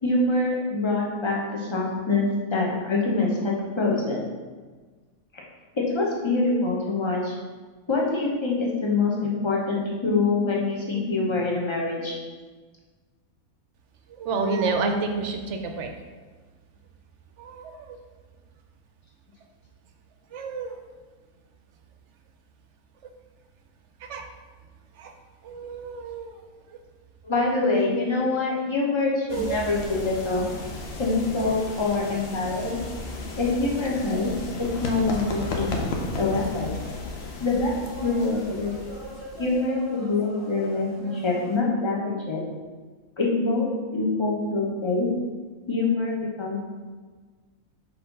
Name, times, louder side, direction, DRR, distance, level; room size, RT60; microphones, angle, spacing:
voice 1, 0.0-4.2 5.7-7.3 7.9-12.2 27.2-30.4 31.0-32.8 33.4-34.3 34.6-35.9 36.1-36.8 37.4-37.7 38.0-38.7 39.4-42.4 43.2-45.1 45.7-46.6, left 3 dB, 25° left, -3 dB, 0.9 m, -25 dB
voice 2, 14.1-15.9 17.4-18.0 20.3-20.8 24.0-24.2 25.0-25.1 25.4-26.4 29.3-29.6, right 4 dB, 65° right, 4 dB, 0.9 m, -29 dB
sound 1, 29.3-39.6, left 2 dB, 55° left, 0.9 m, -34 dB
sound 2, 35.0-41.6, right 1 dB, ahead, 1.6 m, -42 dB
4.3 x 4.2 x 5.3 m, 1.4 s
omnidirectional pair, 1.5 m